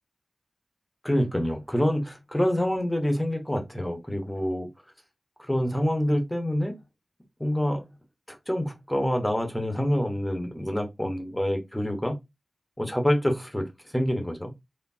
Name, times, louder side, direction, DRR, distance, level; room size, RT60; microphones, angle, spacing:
voice 1, 1.0-4.7 5.4-6.8 7.4-7.9 8.3-12.1 12.8-13.7 13.9-14.5, equal, 10° left, 1.2 m, -26 dB
4.4 x 3.2 x 2.7 m
wide cardioid pair, 80°, 0 cm